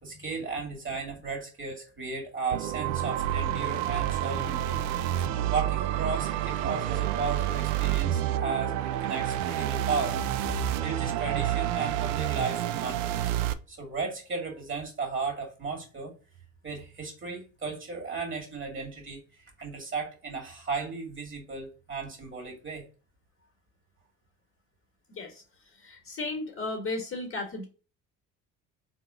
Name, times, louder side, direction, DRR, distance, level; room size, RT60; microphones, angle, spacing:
voice 1, 0.0-4.8 5.5-13.3 13.7-16.1 16.6-22.8, right 4 dB, 30° right, 2.3 m, -35 dB
sound 1, 2.5-13.5, right 12 dB, 75° right, 0.5 m, -29 dB
voice 2, 25.7-27.6, left 2 dB, 35° left, 1.5 m, -35 dB
3.9 x 3.7 x 2.6 m
hypercardioid pair, 55°, 38 cm